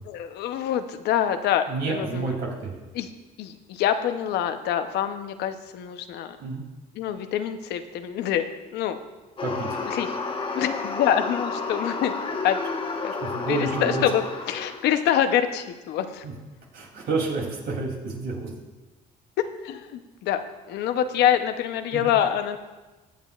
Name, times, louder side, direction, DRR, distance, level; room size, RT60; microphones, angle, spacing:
voice 1, 0.1-2.3 2.9-3.1 3.4-6.4 7.0-8.5 8.7-9.0 9.9-10.1 10.5-12.1 12.4-12.6 13.0-13.1 13.5-16.2 19.4-20.4 20.7-22.6, left 10 dB, 80° left, 8 dB, 0.8 m, -25 dB
voice 2, 1.7-2.7 6.4-6.6 9.4-9.8 13.2-14.0 16.2-16.3 16.7-18.5 21.9-22.1, right 3 dB, 70° right, -1 dB, 3.0 m, -29 dB
sound 1, 9.4-14.9, left 4 dB, 30° left, 1.3 m, -31 dB
21.5 x 7.4 x 2.4 m, 1.2 s
cardioid pair, 110°, 17 cm